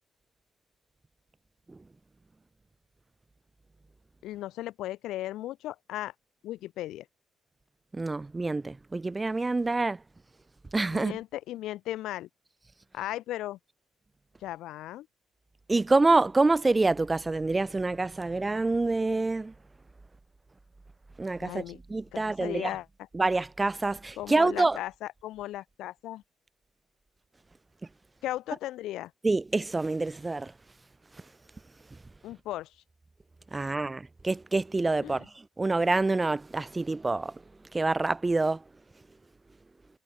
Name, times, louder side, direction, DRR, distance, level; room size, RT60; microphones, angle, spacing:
voice 1, 4.2-6.1 6.4-7.1 10.9-12.3 12.9-13.6 14.4-15.1 21.4-21.8 22.1-22.9 24.2-26.2 28.2-29.1 32.2-32.7 33.6-33.7 35.0-35.3, left 14 dB, 90° left, 2.6 m, -36 dB
voice 2, 7.9-10.0 10.7-11.1 15.7-19.5 21.2-21.6 21.9-22.7 23.1-24.8 29.2-30.5 33.5-37.4 37.7-38.6, right 3 dB, 20° right, 1.5 m, -26 dB
cardioid pair, 90°, 0 cm